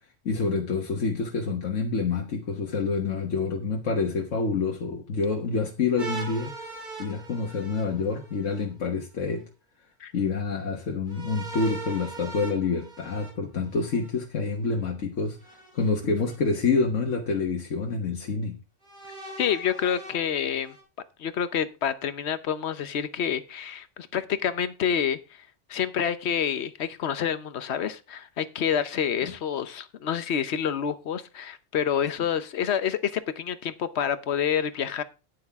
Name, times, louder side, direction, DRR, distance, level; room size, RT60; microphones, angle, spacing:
voice 1, 0.2-6.5 7.0-9.4 10.1-15.4 15.7-18.6 29.2-29.3, left 4 dB, 85° left, 1 dB, 1.6 m, -27 dB
sound 1, 6.0-8.6 11.1-14.1 15.4-16.3 17.1-17.2 18.8-20.8, right 3 dB, 40° right, 3.2 m, -41 dB
voice 2, 19.4-20.8 21.2-35.0, left 8 dB, 65° left, 13 dB, 1.1 m, -28 dB
9.8 x 9.8 x 3.6 m, 0.30 s
omnidirectional pair, 1.3 m